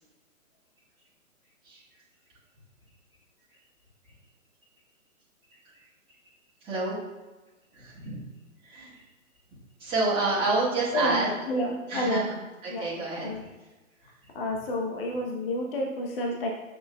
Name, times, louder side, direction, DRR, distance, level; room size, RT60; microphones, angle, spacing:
voice 1, 6.6-7.0 7.7-8.2 8.6-8.9 9.8-11.3 11.9-12.2 12.6-13.3, right 3 dB, 10° right, -9 dB, 1.6 m, -28 dB
voice 2, 10.9-12.3 12.7-12.9 13.2-13.4 14.3-16.5, left 1 dB, 40° left, 1 dB, 0.9 m, -30 dB
6.9 x 6.3 x 2.2 m, 1.2 s
figure-of-eight pair, 125°, 42 cm